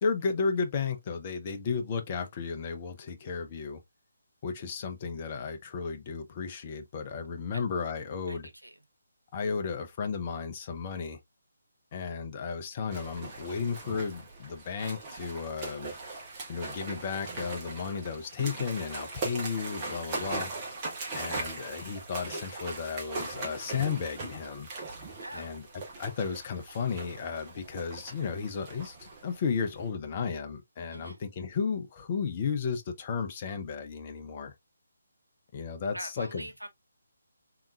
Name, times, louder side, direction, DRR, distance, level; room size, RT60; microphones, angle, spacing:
voice 1, 0.0-3.8 4.4-8.5 9.3-11.2 11.9-15.9 16.5-20.5 21.1-24.7 25.3-25.7 26.0-34.5 35.5-36.5, left 5 dB, 30° left, 0.6 m, -34 dB
voice 2, 8.3-8.8 20.0-20.4 25.2-25.6 30.9-31.2 35.9-36.7, right 1 dB, 85° right, 0.7 m, -44 dB
sound 1, 12.9-29.9, right 3 dB, 25° right, 1.1 m, -40 dB
3.5 x 2.9 x 2.4 m
figure-of-eight pair, 145°, 0 cm